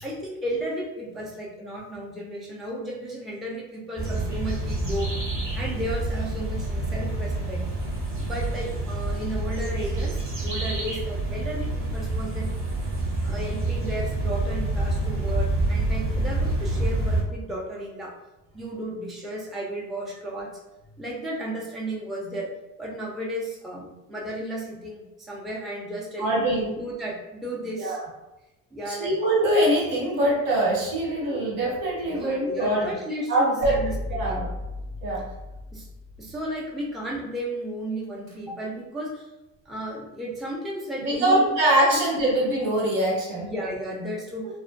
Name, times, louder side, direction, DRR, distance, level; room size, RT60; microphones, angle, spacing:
voice 1, 0.0-5.1 5.6-7.7 8.2-12.5 13.2-18.2 18.5-20.5 21.0-22.5 22.8-26.4 26.7-28.0 28.7-29.1 32.0-34.4 35.7-35.9 36.2-39.3 39.7-41.5 41.9-42.0 43.4-44.5, right 1 dB, ahead, -4 dB, 0.4 m, -34 dB
sound 1, 4.0-17.2, right 2 dB, 35° right, 0.7 m, -27 dB
voice 2, 26.2-26.7 27.7-28.0 28.9-32.8 33.3-33.7 34.1-34.5 35.0-35.2 41.0-43.5, right 1 dB, 70° right, -5 dB, 1.3 m, -23 dB
sound 2, 31.6-32.9 33.6-36.9 38.0-38.3, left 1 dB, 90° right, 0.8 m, -36 dB
2.3 x 2.2 x 2.5 m, 1.0 s
hypercardioid pair, 75°, 39 cm